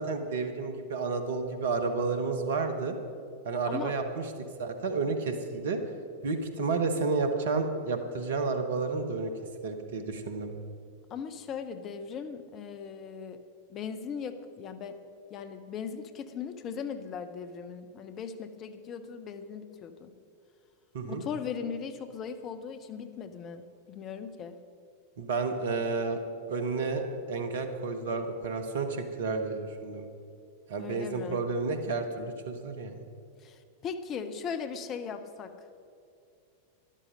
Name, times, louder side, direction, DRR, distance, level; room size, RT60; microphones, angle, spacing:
voice 1, 0.0-3.0 3.4-4.2 4.6-5.8 6.2-9.3 9.6-10.6 20.9-21.2 25.2-26.2 26.5-30.1 30.7-33.0, right 4 dB, 60° right, 7 dB, 1.3 m, -31 dB
voice 2, 11.1-13.4 13.7-15.0 15.3-20.1 21.0-23.6 23.9-24.6 30.8-31.4 33.4-35.5, left 6 dB, 30° left, 9 dB, 0.8 m, -38 dB
13.0 x 11.5 x 5.2 m, 2.4 s
figure-of-eight pair, 90°, 0 cm